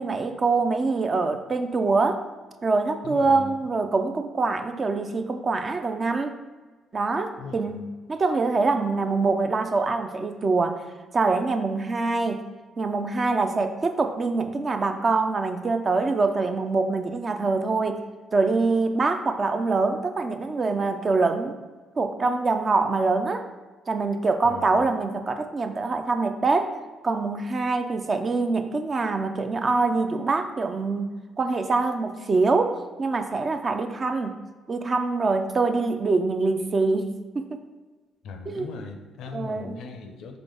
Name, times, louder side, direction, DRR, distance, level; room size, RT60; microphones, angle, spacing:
voice 1, 0.0-2.2 2.6-6.3 6.9-10.8 11.1-12.4 12.8-18.0 18.3-21.6 22.0-23.4 23.9-26.7 27.0-34.4 34.7-37.6 38.5-38.7 39.3-39.8, right 3 dB, 40° right, 6 dB, 0.4 m, -24 dB
voice 2, 3.0-3.7 7.4-7.8 24.4-24.9 38.2-40.4, left 4 dB, 65° left, 5 dB, 0.4 m, -39 dB
3.8 x 3.4 x 3.4 m, 1.3 s
hypercardioid pair, 45°, 0 cm